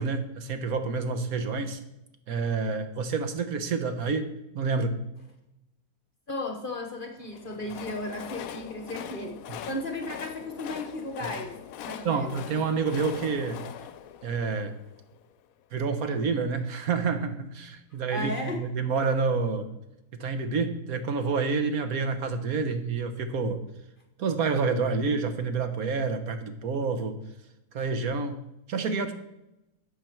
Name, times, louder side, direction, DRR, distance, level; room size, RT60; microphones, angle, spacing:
voice 1, 0.0-1.8 2.3-5.0 9.5-9.6 12.0-13.6 14.2-14.7 15.7-19.7 20.2-23.6 24.2-27.2 27.7-28.4 28.7-29.1, right 4 dB, 65° right, 8 dB, 1.4 m, -28 dB
voice 2, 6.3-9.4 9.6-11.5 11.8-12.4 18.1-18.7, left 1 dB, 40° left, 4 dB, 1.0 m, -35 dB
Train, 7.2-15.3, left 9 dB, 70° left, 1.0 m, -42 dB
11.5 x 7.2 x 4.5 m, 0.89 s
omnidirectional pair, 1.7 m